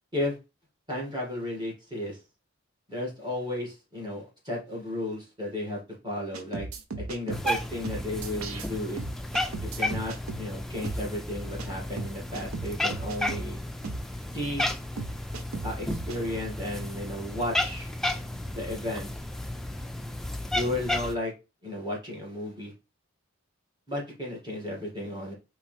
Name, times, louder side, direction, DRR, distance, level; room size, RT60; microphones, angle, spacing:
voice 1, 0.9-2.2 2.9-6.7 7.0-9.0 9.8-13.7 14.3-14.7 15.6-17.9 18.4-19.1 20.5-21.3 21.6-22.7 23.9-25.3, left 1 dB, 20° right, -3 dB, 2.1 m, -34 dB
sound 1, 6.3-7.6 7.8-8.7 9.0-10.5 10.8-11.0 11.6-11.7 12.0-13.5 13.8-14.0 14.6-14.7 15.0-16.2, right 3 dB, 85° right, 0.7 m, -36 dB
Cat, 7.3-21.2, left 1 dB, ahead, 0.3 m, -33 dB
4.9 x 3.3 x 3.3 m, 0.28 s
head